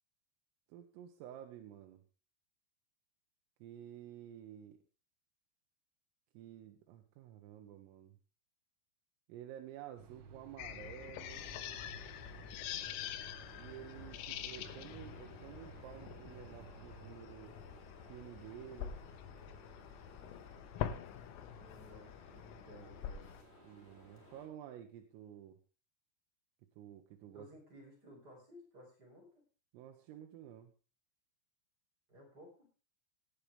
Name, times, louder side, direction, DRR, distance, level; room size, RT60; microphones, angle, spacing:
voice 1, 0.7-2.0 3.6-4.8 6.4-8.2 9.3-11.5 13.6-17.5 18.1-19.0 23.6-25.6 26.8-27.5 29.7-30.7, right 11 dB, 85° right, 4 dB, 3.8 m, -51 dB
sound 1, 10.0-17.2, right 6 dB, 65° right, 3.6 m, -56 dB
sound 2, 10.6-23.4, left 10 dB, 80° left, 3.5 m, -46 dB
sound 3, 11.2-24.5, equal, 15° left, 3.0 m, -60 dB
voice 2, 14.0-15.0 21.6-23.5 27.2-29.4 32.1-32.7, equal, 20° right, 0 dB, 4.6 m, -57 dB
17.5 x 9.7 x 3.4 m, 0.34 s
omnidirectional pair, 5.9 m